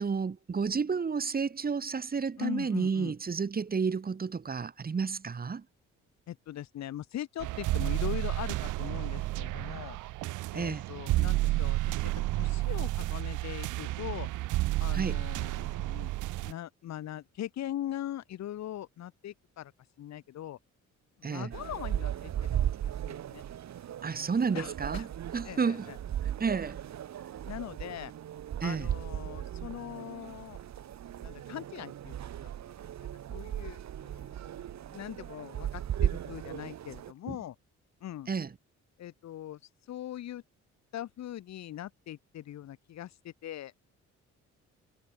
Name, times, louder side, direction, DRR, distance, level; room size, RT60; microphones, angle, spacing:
voice 1, 0.0-5.6 10.5-10.8 14.9-15.2 21.2-21.5 24.0-25.1 25.3-25.8 26.4-26.8 28.6-28.9 37.3-37.4 38.3-38.5, right 5 dB, 30° right, 1.7 m, -31 dB
voice 2, 2.4-3.1 6.3-10.0 10.5-14.3 14.8-16.1 16.4-19.7 20.0-20.6 21.2-23.4 24.5-25.1 25.4-26.0 27.4-28.1 28.6-30.6 31.2-32.2 32.4-32.5 33.3-37.6 38.0-38.3 39.0-39.6 39.9-40.4 40.9-43.7, left 12 dB, 65° left, 1.2 m, -41 dB
sound 1, 7.4-16.5, right 17 dB, 80° right, 0.6 m, -31 dB
sound 2, 21.5-37.1, right 10 dB, 65° right, 2.4 m, -36 dB
cardioid pair, 90°, 30 cm